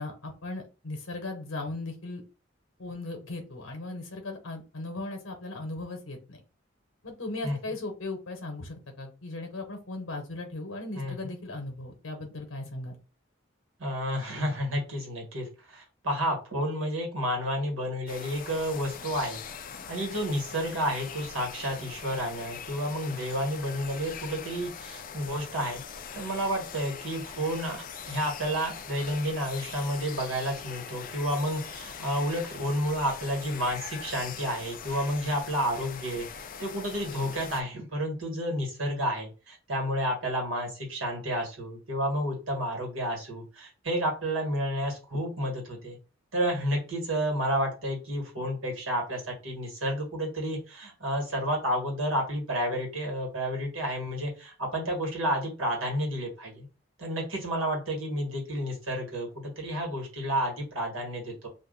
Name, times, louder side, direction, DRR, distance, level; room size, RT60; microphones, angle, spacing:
voice 1, 0.0-2.2 2.8-6.4 7.0-13.0, left 2 dB, 90° left, 4 dB, 0.8 m, -37 dB
voice 2, 11.0-11.3 13.8-19.4 19.9-25.8 26.1-46.0 46.3-56.7 57.0-61.5, equal, 80° right, 0 dB, 1.6 m, -31 dB
sound 1, 18.1-37.6, left 7 dB, 45° left, 0.3 m, -42 dB
2.6 x 2.4 x 3.8 m, 0.33 s
head